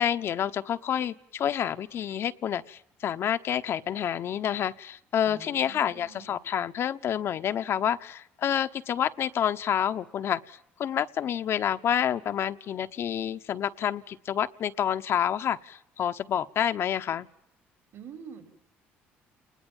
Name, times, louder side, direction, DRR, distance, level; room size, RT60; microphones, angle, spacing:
voice 1, 0.0-17.3, left 9 dB, 60° left, 9 dB, 1.1 m, -28 dB
voice 2, 5.2-6.4 17.9-18.5, right 6 dB, 60° right, 5 dB, 5.6 m, -46 dB
29.5 x 20.5 x 7.3 m, 0.77 s
supercardioid pair, 85°, 5 cm